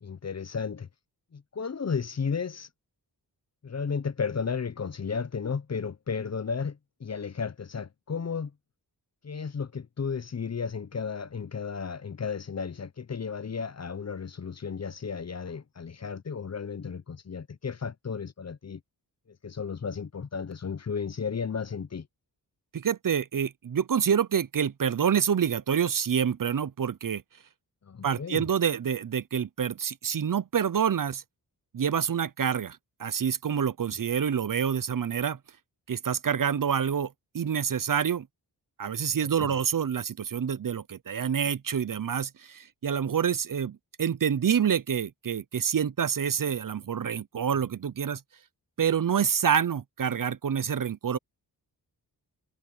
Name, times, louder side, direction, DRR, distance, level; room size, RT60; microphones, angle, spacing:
voice 1, 0.0-0.9 1.3-2.7 3.6-8.5 9.2-18.8 19.4-22.1 27.8-28.4 39.4-39.5, left 5 dB, 40° left, 0.7 m, -33 dB
voice 2, 22.7-27.2 28.0-31.2 31.7-35.4 35.9-38.3 38.8-48.2 48.8-51.2, right 8 dB, 50° right, 0.7 m, -27 dB
wide cardioid pair, 70°, 42 cm